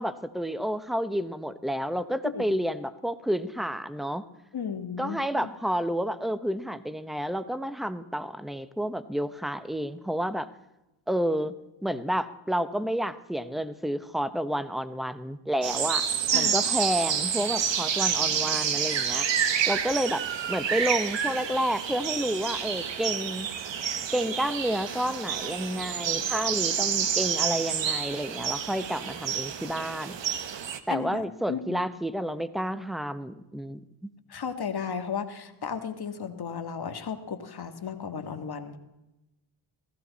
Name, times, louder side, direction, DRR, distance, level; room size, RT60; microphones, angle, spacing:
voice 1, 0.0-4.2 5.0-10.5 11.1-11.5 11.8-16.1 16.3-19.3 19.7-23.5 24.1-30.2 30.9-34.1, equal, ahead, 13 dB, 0.8 m, -30 dB
voice 2, 4.5-5.5 16.3-16.5 30.9-31.8 34.3-38.8, left 6 dB, 50° left, 6 dB, 1.6 m, -34 dB
sound 1, 15.6-30.8, right 8 dB, 60° right, 1.2 m, -29 dB
15.5 x 14.5 x 4.1 m, 0.97 s
cardioid pair, 55°, 49 cm